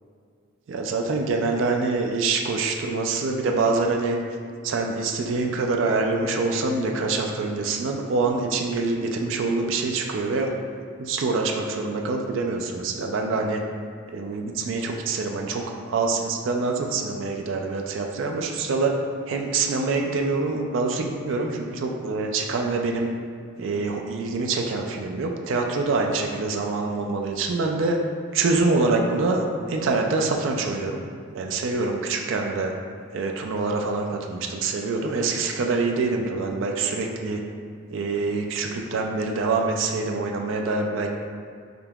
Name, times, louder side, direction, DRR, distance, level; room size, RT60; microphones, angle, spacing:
voice 1, 0.7-4.2 4.6-10.5 11.0-13.6 14.1-18.9 19.3-23.1 23.6-28.0 28.3-31.0 31.3-32.7 33.1-37.4 37.9-41.1, right 3 dB, 70° right, 2 dB, 0.3 m, -25 dB
5.1 x 2.8 x 2.3 m, 2.2 s
head